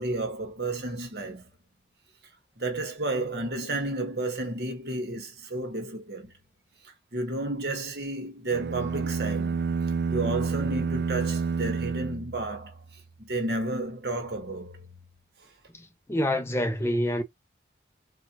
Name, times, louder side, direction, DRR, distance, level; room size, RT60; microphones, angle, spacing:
voice 1, 0.0-1.5 2.6-6.3 7.1-9.6 10.1-12.8 13.2-14.9, right 2 dB, 65° right, 1.2 m, -32 dB
sound 1, 8.5-12.9, right 5 dB, 80° right, 0.4 m, -29 dB
voice 2, 15.7-17.2, left 1 dB, 15° left, 0.4 m, -27 dB
4.3 x 2.2 x 2.8 m
head